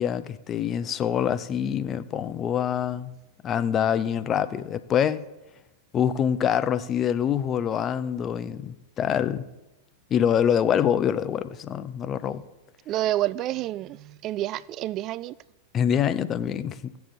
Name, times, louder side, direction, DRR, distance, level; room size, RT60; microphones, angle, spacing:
voice 1, 0.0-3.1 3.4-5.2 5.9-9.4 10.1-12.4 15.7-16.9, left 9 dB, 30° left, 0.6 m, -25 dB
voice 2, 12.9-15.4, right 14 dB, 35° right, 0.3 m, -28 dB
17.0 x 6.9 x 3.8 m
figure-of-eight pair, 90°, 0 cm